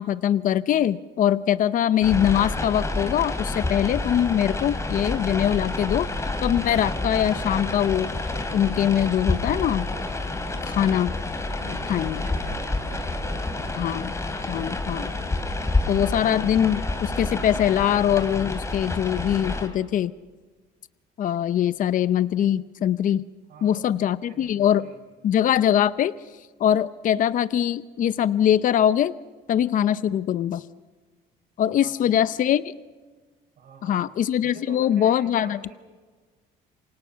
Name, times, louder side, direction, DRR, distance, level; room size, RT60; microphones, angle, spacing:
voice 1, 0.0-6.1 6.4-8.1 8.5-9.9 10.6-11.1 11.7-12.3 13.8-14.1 14.5-15.1 15.9-20.1 21.2-23.3 23.6-24.9 25.2-26.1 26.6-29.1 29.5-30.6 31.6-32.6 33.8-35.6, left 10 dB, 50° left, 15 dB, 0.7 m, -22 dB
sound 1, 2.0-19.7, left 2 dB, 15° left, 3.1 m, -29 dB
voice 2, 10.3-11.1 11.6-14.0 23.5-23.9 24.2-25.0 31.7-32.2 33.6-34.0 34.4-35.7, right 5 dB, 60° right, 6 dB, 5.8 m, -46 dB
28.0 x 24.5 x 5.8 m, 1.4 s
cardioid pair, 110°, 17 cm